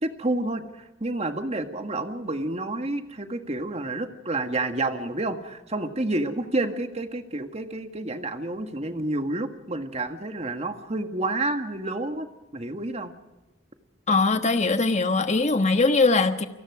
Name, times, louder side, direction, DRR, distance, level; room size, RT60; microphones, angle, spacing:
voice 1, 0.0-12.3 12.5-13.1, right 2 dB, 35° right, 7 dB, 1.7 m, -29 dB
voice 2, 14.1-16.5, left 3 dB, 35° left, 8 dB, 1.3 m, -21 dB
29.0 x 18.5 x 4.9 m, 1.0 s
head